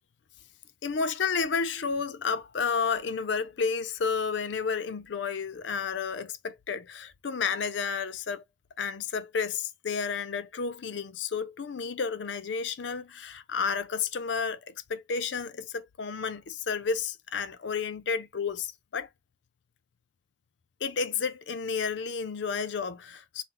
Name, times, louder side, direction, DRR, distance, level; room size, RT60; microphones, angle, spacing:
voice 1, 0.8-8.4 8.8-19.1 20.8-23.4, left 5 dB, 70° left, 0.5 m, -31 dB
4.3 x 2.1 x 3.7 m
head